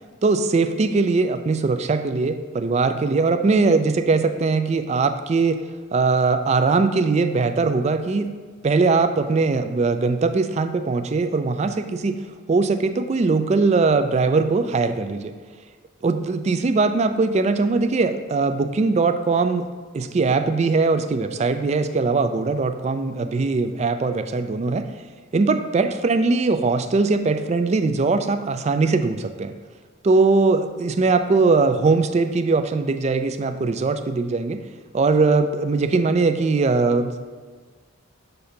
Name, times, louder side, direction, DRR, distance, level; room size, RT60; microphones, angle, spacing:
voice 1, 0.2-5.6 5.9-8.3 8.6-12.2 12.5-15.3 16.0-19.7 19.9-24.9 25.3-29.5 30.0-34.6 34.9-37.2, right 3 dB, 35° right, 9 dB, 0.3 m, -20 dB
6.7 x 2.7 x 5.6 m, 1.5 s
head